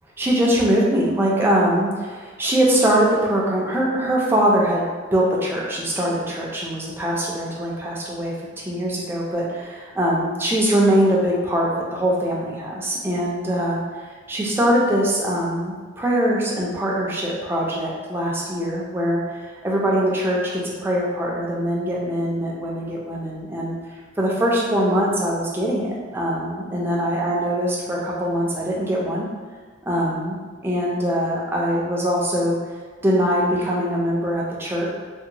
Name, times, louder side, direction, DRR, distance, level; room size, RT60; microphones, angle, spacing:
voice 1, 0.2-13.8 14.3-23.7 24.2-29.3 29.9-30.4 30.6-32.6 33.0-34.9, equal, 10° right, -4 dB, 0.3 m, -22 dB
2.6 x 2.1 x 2.8 m, 1.5 s
head